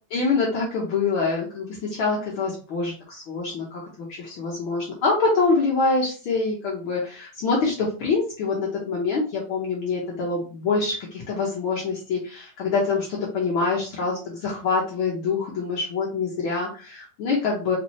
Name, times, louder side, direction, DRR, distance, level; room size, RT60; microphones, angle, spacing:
voice 1, 0.1-17.8, left 4 dB, 75° left, -3 dB, 1.2 m, -25 dB
4.3 x 4.0 x 2.7 m, 0.37 s
omnidirectional pair, 3.8 m